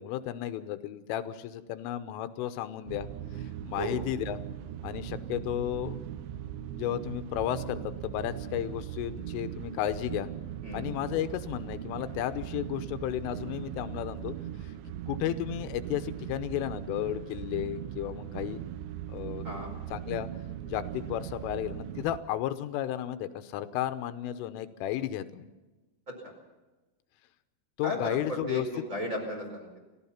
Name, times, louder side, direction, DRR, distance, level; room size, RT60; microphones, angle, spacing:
voice 1, 0.0-3.1 3.4-4.4 4.8-6.0 6.7-10.3 10.7-14.3 14.6-14.7 15.1-18.6 19.1-19.5 19.9-20.3 20.7-25.5 27.8-28.8, left 12 dB, 85° left, 10 dB, 3.4 m, -33 dB
sound 1, 2.9-22.2, right 11 dB, 75° right, 2.7 m, -39 dB
voice 2, 27.8-29.8, equal, 15° right, 3 dB, 4.4 m, -35 dB
29.5 x 15.0 x 5.8 m, 1.2 s
omnidirectional pair, 5.7 m